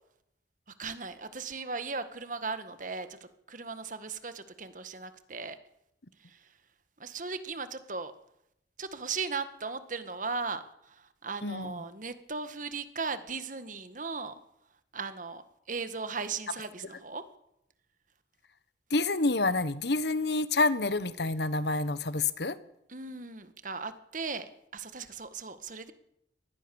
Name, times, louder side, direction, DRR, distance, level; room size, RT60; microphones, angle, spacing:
voice 1, 0.7-5.6 6.2-6.5 7.0-8.1 8.8-14.3 14.9-17.2 22.9-25.9, right 4 dB, 45° right, 11 dB, 1.7 m, -37 dB
voice 2, 11.4-11.8 18.9-22.6, left 3 dB, 70° left, 14 dB, 1.3 m, -28 dB
24.5 x 19.5 x 7.1 m, 0.79 s
head